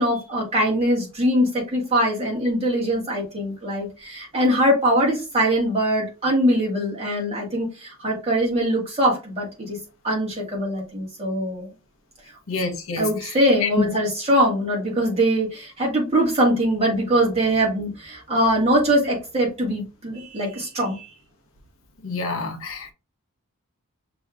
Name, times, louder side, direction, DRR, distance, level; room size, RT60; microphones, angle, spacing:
voice 1, 0.0-9.8 10.0-11.7 13.0-21.1, equal, 25° right, 1.8 m, -22 dB
voice 2, 12.5-13.3 13.6-13.9 22.0-22.9, left 3 dB, 65° left, 0.9 m, -27 dB
6.0 x 3.0 x 2.4 m
head